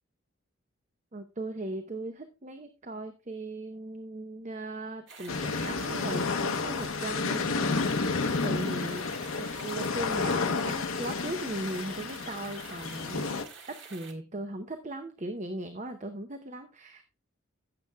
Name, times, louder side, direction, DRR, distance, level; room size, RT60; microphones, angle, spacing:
voice 1, 1.1-17.0, right 2 dB, 35° right, 7 dB, 0.7 m, -38 dB
sound 1, 5.1-14.1, right 5 dB, 60° right, 1.7 m, -48 dB
sound 2, 5.3-13.4, left 4 dB, 80° left, 0.8 m, -31 dB
16.0 x 6.9 x 2.2 m, 0.30 s
head